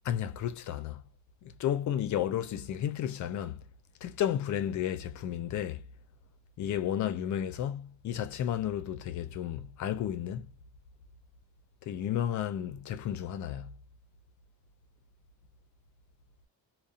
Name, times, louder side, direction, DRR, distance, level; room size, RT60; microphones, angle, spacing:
voice 1, 0.1-1.0 1.6-3.6 4.0-5.8 6.6-10.5 11.9-13.7, left 10 dB, 45° left, 0.4 m, -32 dB
2.7 x 2.1 x 2.3 m
cardioid pair, 170°, 42 cm